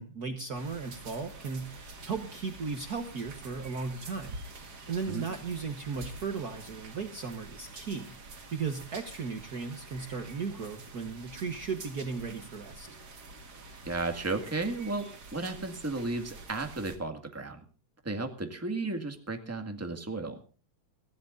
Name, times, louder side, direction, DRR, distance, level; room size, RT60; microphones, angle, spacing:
voice 1, 0.0-8.2 8.5-12.9, right 5 dB, 85° right, 7 dB, 0.8 m, -36 dB
sound 1, 0.5-17.0, right 3 dB, 35° right, 2.3 m, -47 dB
voice 2, 13.9-17.6 18.0-20.4, right 3 dB, 5° right, 5 dB, 1.2 m, -34 dB
24.0 x 15.5 x 2.6 m, 0.36 s
omnidirectional pair, 3.9 m